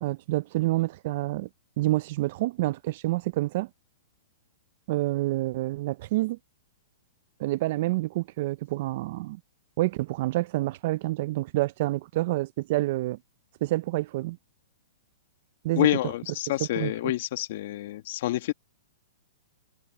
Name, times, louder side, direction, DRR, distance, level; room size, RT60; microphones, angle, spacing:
voice 1, 0.0-1.5 1.8-3.7 4.9-6.4 7.4-9.4 9.8-13.2 13.6-14.4 15.6-15.9 16.8-16.9, right 18 dB, 50° right, 0.4 m, -28 dB
voice 2, 15.7-18.5, left 15 dB, 55° left, 1.2 m, -27 dB
hypercardioid pair, 150°, 0 cm